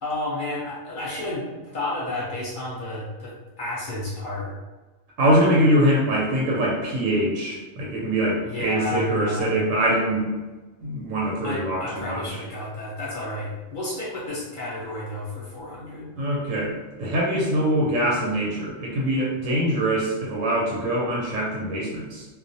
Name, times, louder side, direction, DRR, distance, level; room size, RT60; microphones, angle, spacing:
voice 1, 0.0-4.5 8.4-9.6 11.4-16.1, left 1 dB, 55° left, -5 dB, 0.6 m, -31 dB
voice 2, 5.2-10.3 10.8-12.4 16.2-22.3, right 1 dB, 90° right, -4 dB, 1.0 m, -23 dB
2.3 x 2.0 x 2.6 m, 1.2 s
omnidirectional pair, 1.3 m